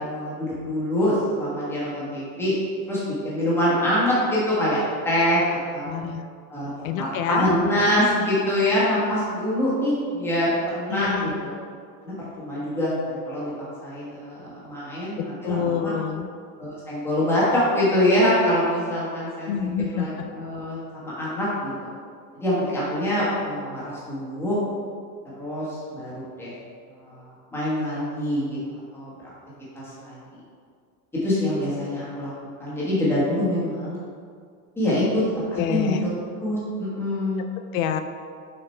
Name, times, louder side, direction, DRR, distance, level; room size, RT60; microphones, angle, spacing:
voice 1, 0.0-2.5 2.9-6.0 6.5-6.7 6.9-11.5 12.0-13.5 13.8-15.9 16.6-19.5 19.9-21.7 22.3-24.6 25.3-25.7 25.9-26.5 27.0-27.1 27.5-28.6 28.9-29.1 30.0-30.2 31.2-32.3 32.6-34.0 34.8-35.2 35.5-36.1 36.4-37.4, left 1 dB, 5° left, -9 dB, 1.4 m, -24 dB
voice 2, 5.9-6.2 6.8-7.5 10.9-11.4 15.2-16.3 19.5-20.1 35.6-36.0 37.7-38.0, left 8 dB, 65° left, 8 dB, 0.6 m, -27 dB
6.5 x 3.9 x 4.4 m, 2.2 s
supercardioid pair, 170°, 45 cm